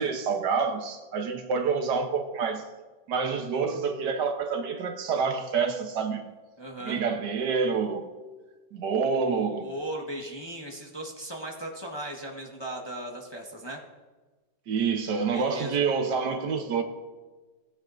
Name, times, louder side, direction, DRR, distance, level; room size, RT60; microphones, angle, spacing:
voice 1, 0.0-2.7 3.1-6.2 6.8-8.1 8.7-9.7 14.7-16.8, right 5 dB, 75° right, 1.5 m, -27 dB
voice 2, 6.6-7.0 9.6-13.8 15.3-16.2, right 1 dB, 15° left, 1.1 m, -37 dB
17.5 x 9.6 x 2.6 m
omnidirectional pair, 1.9 m